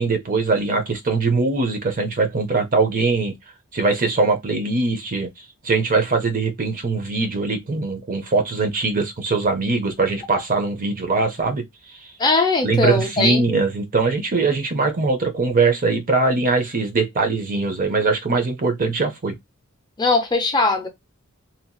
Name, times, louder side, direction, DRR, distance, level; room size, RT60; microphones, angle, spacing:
voice 1, 0.0-3.3 3.7-5.3 5.6-12.0 12.6-19.3, right 3 dB, 40° right, 0.7 m, -21 dB
voice 2, 12.2-13.4 20.0-20.9, left 3 dB, 20° left, 0.5 m, -19 dB
2.8 x 2.8 x 2.2 m
head